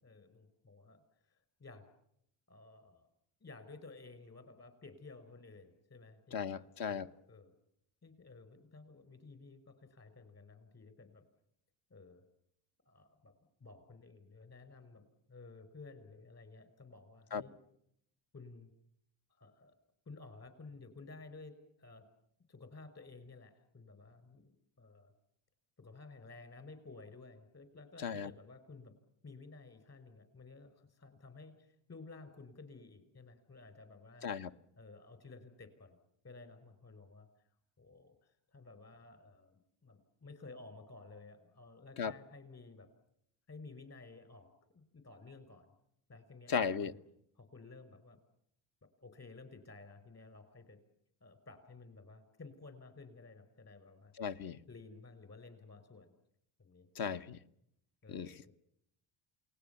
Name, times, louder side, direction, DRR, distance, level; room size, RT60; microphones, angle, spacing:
voice 1, 0.0-1.8 2.5-3.1 3.4-7.6 8.0-11.3 11.9-12.2 12.9-13.3 13.6-17.6 18.3-18.7 19.3-19.7 20.1-22.0 22.5-25.1 25.8-28.9 29.2-34.3 34.8-36.0 36.2-37.3 37.8-42.9 43.5-44.5 44.7-45.7 46.1-46.5 46.8-47.0 47.3-48.2 48.8-50.8 51.2-54.1 54.7-56.1 56.6-57.2 58.0-58.5, left 3 dB, 35° left, 5.5 m, -54 dB
voice 2, 6.3-7.1 17.3-17.4 28.0-28.3 34.2-34.5 42.0-42.1 46.5-46.9 54.2-54.6 57.0-57.4 58.1-58.5, left 6 dB, 50° left, 1.2 m, -36 dB
28.5 x 19.5 x 7.1 m
supercardioid pair, 95°, 45 cm